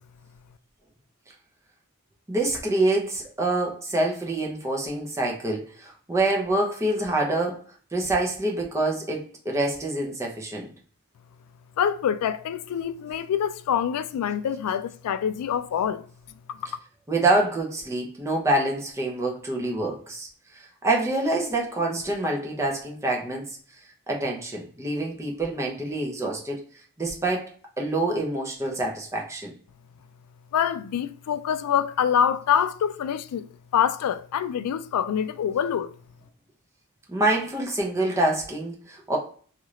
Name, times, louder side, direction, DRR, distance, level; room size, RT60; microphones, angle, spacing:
voice 1, 2.3-7.6 7.9-10.7 17.1-20.3 20.5-23.6 24.1-26.6 27.0-29.5 37.1-39.2, right 2 dB, 15° right, 0.6 m, -26 dB
voice 2, 11.8-16.1 16.5-16.7 30.5-33.5 33.7-35.9, left 8 dB, 90° left, 0.3 m, -25 dB
2.8 x 2.4 x 3.1 m
head